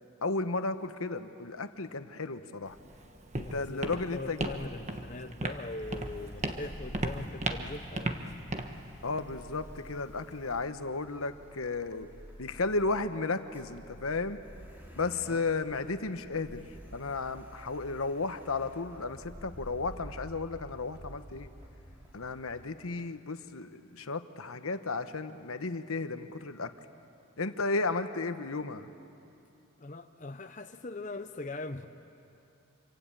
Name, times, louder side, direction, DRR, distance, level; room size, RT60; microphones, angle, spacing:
voice 1, 0.2-2.8 3.4-4.4 9.0-12.1 12.4-14.4 14.9-21.5 22.1-26.7 27.4-28.9, left 3 dB, 80° left, 9 dB, 1.1 m, -34 dB
Walk footsteps, 2.7-10.6, right 2 dB, 30° right, 1.3 m, -37 dB
voice 2, 3.4-8.2 15.3-15.4 29.8-31.9, left 2 dB, 35° left, 7 dB, 0.8 m, -41 dB
Car, 5.8-22.7, equal, 10° right, 3.2 m, -49 dB
27.0 x 24.0 x 9.0 m, 2.8 s
head